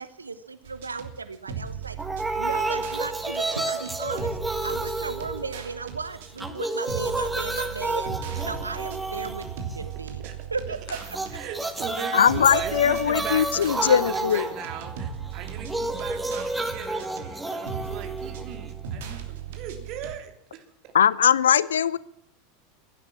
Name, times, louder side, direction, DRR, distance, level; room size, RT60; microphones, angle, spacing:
voice 1, 0.0-2.0 2.4-8.2 8.4-10.2 10.5-11.0, right 4 dB, 80° right, 13 dB, 0.8 m, -35 dB
sound 1, 0.6-20.2, right 8 dB, 60° right, 2.9 m, -38 dB
sound 2, 2.0-6.0 6.3-10.0 11.0-19.0, right 2 dB, 5° right, 1.8 m, -31 dB
voice 2, 10.7-11.0 11.3-20.3, right 8 dB, 45° right, 5 dB, 3.1 m, -38 dB
sound 3, 10.8-12.0, left 8 dB, 55° left, 2.3 m, -50 dB
voice 3, 12.1-14.5 20.9-22.0, left 8 dB, 70° left, 21 dB, 0.6 m, -20 dB
16.0 x 12.0 x 7.4 m, 0.72 s
figure-of-eight pair, 85°, 0 cm